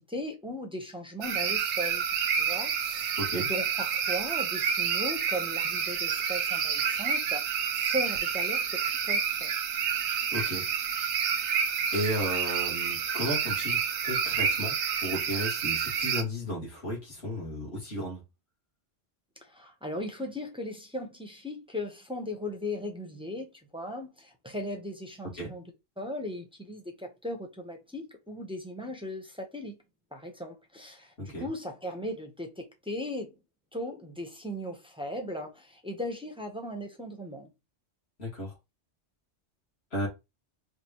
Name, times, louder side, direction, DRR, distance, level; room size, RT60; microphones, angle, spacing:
voice 1, 0.0-2.0 2.4-9.5 19.5-25.6 26.0-29.8 30.1-33.3 33.7-37.5, left 1 dB, 5° right, 0.6 m, -37 dB
sound 1, 1.2-16.2, right 7 dB, 80° right, 0.9 m, -29 dB
voice 2, 3.2-3.5 10.3-10.6 11.9-14.8 15.0-18.2 25.4-25.5 31.2-31.5 38.2-38.5 39.9-40.1, equal, 65° left, 2.4 m, -34 dB
5.2 x 2.5 x 2.9 m
omnidirectional pair, 1.2 m